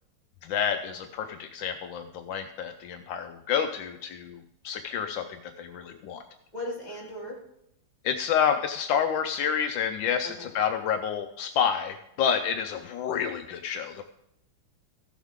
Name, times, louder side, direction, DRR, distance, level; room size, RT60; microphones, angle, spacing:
voice 1, 0.4-4.4 4.6-6.2 8.0-14.0, left 8 dB, 80° left, 7 dB, 1.3 m, -29 dB
voice 2, 6.5-7.4 10.2-10.5, left 1 dB, 20° left, -3 dB, 2.7 m, -37 dB
15.0 x 7.3 x 3.6 m, 0.79 s
omnidirectional pair, 2.1 m